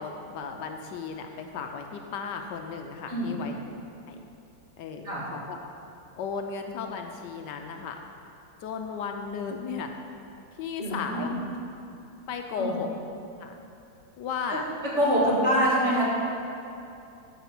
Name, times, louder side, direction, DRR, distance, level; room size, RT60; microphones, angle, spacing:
voice 1, 0.0-3.5 4.1-4.2 4.8-5.6 6.2-8.0 8.6-9.9 10.6-11.3 12.3-12.9 13.4-13.6 14.2-14.6, left 5 dB, 75° left, 4 dB, 1.2 m, -35 dB
voice 2, 3.1-3.4 5.0-5.3 10.8-11.4 12.6-12.7 14.5-14.6 14.9-16.0, equal, 40° right, -7 dB, 2.6 m, -25 dB
13.5 x 4.9 x 6.0 m, 2.7 s
omnidirectional pair, 2.0 m